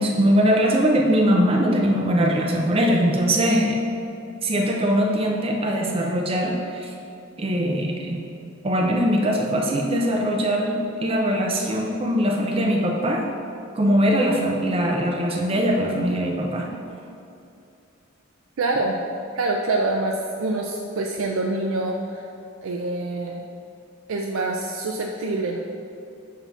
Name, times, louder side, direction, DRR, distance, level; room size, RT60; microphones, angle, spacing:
voice 1, 0.0-3.8 4.4-6.9 7.4-8.2 8.6-13.3 13.7-16.7, equal, 30° right, 0 dB, 0.5 m, -21 dB
voice 2, 18.6-19.0 19.3-22.2 22.6-23.4 24.1-25.6, right 2 dB, 85° right, 0 dB, 0.4 m, -25 dB
7.0 x 2.8 x 5.6 m, 2.6 s
head